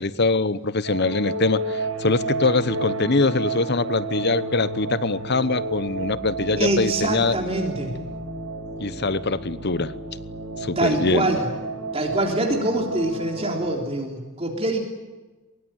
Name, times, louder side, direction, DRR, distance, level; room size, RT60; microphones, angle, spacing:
voice 1, 0.0-7.3 8.8-9.9 10.6-11.3, left 3 dB, 50° left, 16 dB, 1.0 m, -23 dB
sound 1, 0.8-13.8, right 2 dB, 80° right, 7.5 m, -31 dB
voice 2, 6.6-8.0 10.7-11.5 11.9-14.8, right 1 dB, 25° right, 1 dB, 3.4 m, -24 dB
24.0 x 22.5 x 9.1 m, 1.2 s
head